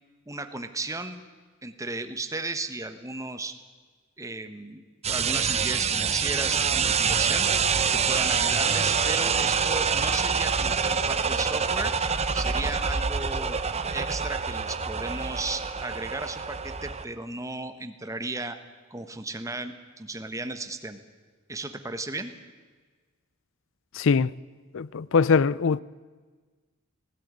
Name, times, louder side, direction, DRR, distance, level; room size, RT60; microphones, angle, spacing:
voice 1, 0.3-1.2 1.6-3.5 4.2-4.8 5.1-7.5 7.9-11.9 12.3-18.6 18.9-21.0 21.5-22.3, right 2 dB, 15° right, 1.3 m, -35 dB
sound 1, 5.0-17.0, right 6 dB, 30° right, 0.9 m, -26 dB
voice 2, 23.9-24.3 24.7-25.8, left 5 dB, 65° left, 0.5 m, -22 dB
17.0 x 16.5 x 9.7 m
head